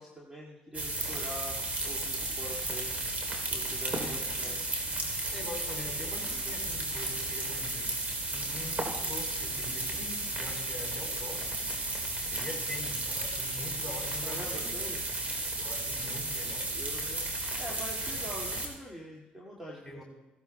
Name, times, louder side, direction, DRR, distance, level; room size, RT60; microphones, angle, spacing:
voice 1, 0.0-2.9 3.2-4.8 14.2-15.0 16.7-17.3 17.6-20.0, equal, 10° right, -3 dB, 2.3 m, -44 dB
sound 1, 0.7-18.7, right 2 dB, 40° right, 3.5 m, -34 dB
voice 2, 3.8-4.4 5.3-8.0 8.3-11.6 12.2-14.7 15.6-16.7 18.0-18.1 19.8-20.0, left 2 dB, 10° left, -1 dB, 4.4 m, -44 dB
16.0 x 15.0 x 2.3 m, 1.1 s
supercardioid pair, 55°, 4 cm